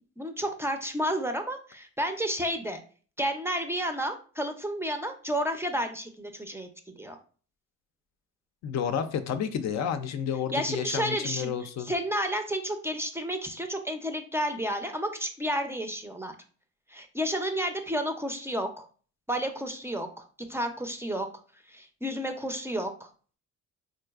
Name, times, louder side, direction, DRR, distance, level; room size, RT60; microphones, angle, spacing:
voice 1, 0.2-2.8 3.2-6.7 7.0-7.2 10.5-16.3 16.9-18.9 19.3-21.3 21.7-23.1, equal, 10° right, 5 dB, 0.4 m, -31 dB
voice 2, 8.6-11.9, left 8 dB, 65° left, 9 dB, 0.4 m, -30 dB
3.8 x 2.5 x 2.3 m, 0.40 s
cardioid pair, 90°, 30 cm